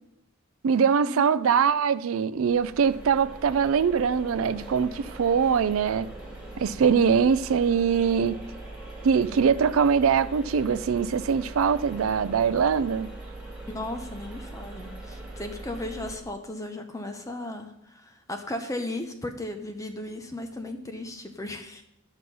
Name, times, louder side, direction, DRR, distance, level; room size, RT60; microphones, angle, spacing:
voice 1, 0.6-6.1 6.6-8.4 9.0-13.1, right 6 dB, 75° right, 0.4 m, -23 dB
sound 1, 2.4-16.2, right 2 dB, 5° right, 2.4 m, -41 dB
voice 2, 13.7-21.8, left 1 dB, 15° left, 0.7 m, -36 dB
11.0 x 6.2 x 5.4 m
head